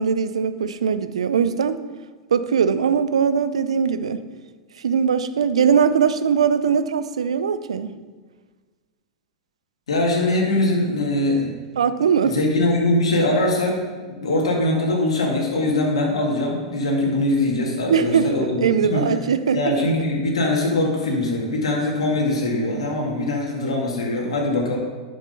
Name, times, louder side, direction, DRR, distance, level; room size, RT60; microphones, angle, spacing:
voice 1, 0.0-1.8 2.3-4.2 4.8-7.9 11.8-12.4 17.9-18.3 18.6-19.6, right 7 dB, 80° right, 12 dB, 0.6 m, -20 dB
voice 2, 9.9-11.5 11.9-19.1 19.5-24.8, left 2 dB, 75° left, -2 dB, 2.3 m, -22 dB
10.5 x 6.5 x 5.5 m, 1.4 s
hypercardioid pair, 100°, 3 cm